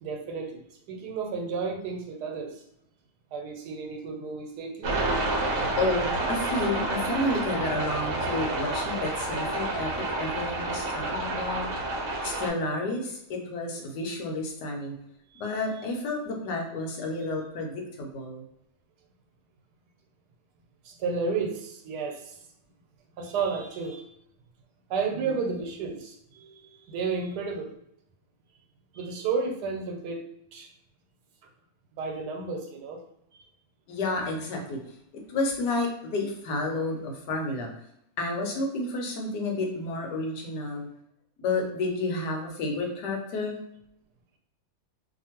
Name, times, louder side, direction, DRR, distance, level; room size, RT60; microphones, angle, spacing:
voice 1, 0.0-2.6 3.3-5.1 15.3-15.4 20.8-22.4 23.2-24.1 24.9-27.8 28.9-30.2 30.5-30.7 32.0-33.0, right 5 dB, 85° right, 3 dB, 1.2 m, -32 dB
sound 1, 4.8-12.5, right 2 dB, 65° right, 1.0 m, -29 dB
voice 2, 5.8-11.7 12.2-14.9 15.4-18.4 25.2-25.5 33.9-34.8 35.3-37.7 38.2-40.9 41.4-43.6, left 2 dB, 90° left, 2 dB, 1.3 m, -30 dB
2.8 x 2.5 x 2.8 m, 0.76 s
omnidirectional pair, 1.7 m